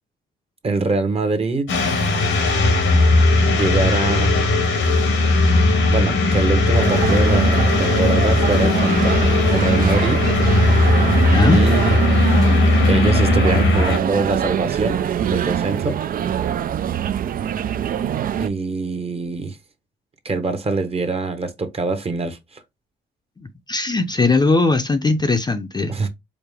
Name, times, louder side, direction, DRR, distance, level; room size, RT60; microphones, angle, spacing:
voice 1, 0.6-1.7 3.5-4.3 5.9-10.2 11.5-12.0 12.9-16.0 18.4-19.6 20.2-22.6 25.9-26.1, right 3 dB, 30° right, 0.9 m, -24 dB
sound 1, 1.7-14.0, left 2 dB, 85° left, 1.6 m, -17 dB
sound 2, 6.7-18.5, right 9 dB, 45° right, 0.4 m, -24 dB
voice 2, 11.3-11.6 23.4-25.9, left 3 dB, 20° left, 0.6 m, -19 dB
4.9 x 2.0 x 3.5 m
cardioid pair, 90°, 20 cm